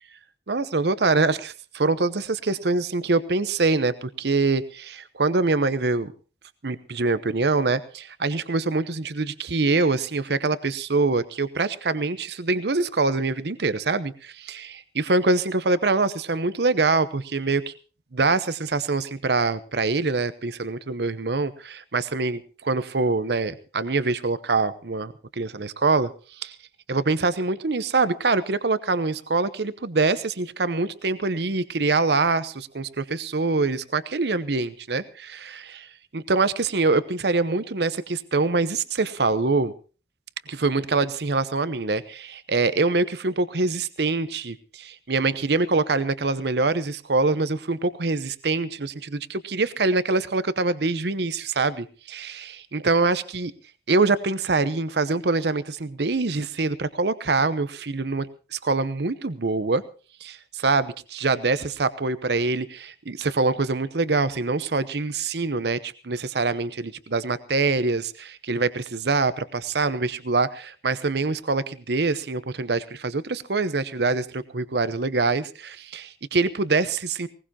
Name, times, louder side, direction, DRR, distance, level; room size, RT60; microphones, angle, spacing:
voice 1, 0.5-6.1 6.6-17.7 18.1-26.6 26.9-39.7 40.5-53.5 53.9-59.8 60.2-77.3, right 3 dB, 65° right, 14 dB, 0.8 m, -24 dB
20.0 x 19.0 x 2.8 m, 0.36 s
head